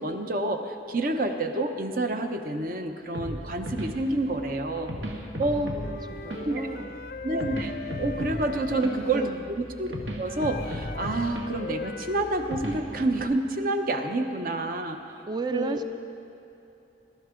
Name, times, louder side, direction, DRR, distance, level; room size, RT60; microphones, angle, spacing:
voice 1, 0.0-5.0 5.4-5.7 6.4-6.7 7.2-9.3 9.6-9.9 10.2-15.2 15.5-15.8, right 2 dB, 50° right, 5 dB, 0.9 m, -28 dB
sound 1, 3.1-13.2, equal, 80° right, 1.9 m, -37 dB
voice 2, 5.4-6.9 8.5-8.8 9.1-9.4 15.3-15.8, right 3 dB, 25° right, 8 dB, 0.4 m, -35 dB
Wind instrument woodwind instrument, 5.8-9.4 10.3-12.8, left 4 dB, 50° left, 0.5 m, -40 dB
21.5 x 12.5 x 3.8 m, 2.8 s
head